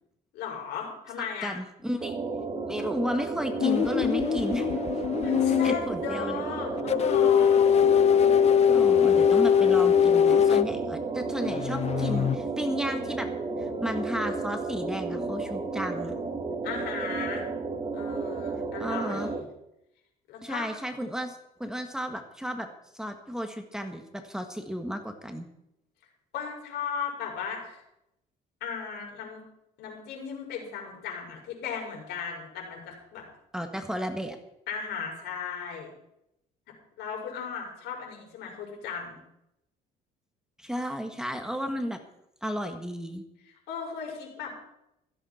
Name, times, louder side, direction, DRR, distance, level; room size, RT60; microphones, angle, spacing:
voice 1, 0.3-1.5 5.2-7.8 8.9-9.6 16.6-17.4 17.9-19.4 20.3-20.7 26.3-27.8 28.6-29.4 29.8-33.3 34.7-35.9 37.0-39.2 43.7-44.5, left 6 dB, 80° left, 0 dB, 5.9 m, -36 dB
voice 2, 1.4-2.2 2.7-4.7 5.4-6.4 8.7-13.3 13.6-16.1 18.8-19.3 20.4-22.7 22.9-25.5 33.5-34.4 40.6-42.0 42.4-43.2, equal, 5° right, 5 dB, 1.7 m, -33 dB
sound 1, 2.0-19.4, right 3 dB, 30° right, 2.5 m, -32 dB
sound 2, 3.6-5.8 6.9-10.7 11.4-12.4, left 8 dB, 40° left, 0.6 m, -22 dB
16.5 x 14.5 x 4.4 m, 0.81 s
cardioid pair, 110°, 17 cm